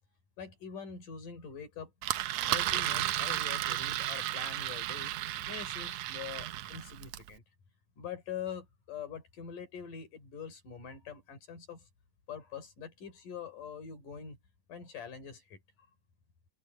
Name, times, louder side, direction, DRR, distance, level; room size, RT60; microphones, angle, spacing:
voice 1, 0.4-1.9 2.5-7.4 8.0-11.9 12.3-14.4 14.7-15.6, left 7 dB, 85° left, 6.0 m, -44 dB
Engine, 2.0-7.3, right 14 dB, 70° right, 1.8 m, -33 dB
omnidirectional pair, 3.6 m